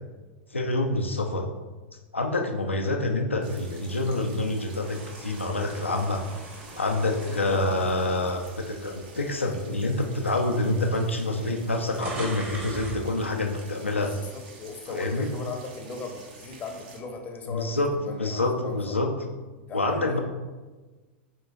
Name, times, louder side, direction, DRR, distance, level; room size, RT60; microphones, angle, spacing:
voice 1, 0.5-1.5 2.1-6.2 6.8-14.1 14.9-15.3 17.5-19.1 19.7-20.2, left 2 dB, 85° left, 3 dB, 0.4 m, -27 dB
sound 1, 3.4-17.0, right 3 dB, 50° right, 0.8 m, -49 dB
sound 2, 4.8-9.1 9.6-9.8 10.7-10.8 11.0-13.1, right 2 dB, 25° right, 1.0 m, -41 dB
voice 2, 7.1-7.7 14.0-18.9 19.7-20.2, left 4 dB, 25° left, 3 dB, 0.6 m, -38 dB
5.1 x 3.6 x 2.3 m, 1.2 s
figure-of-eight pair, 90°, 6 cm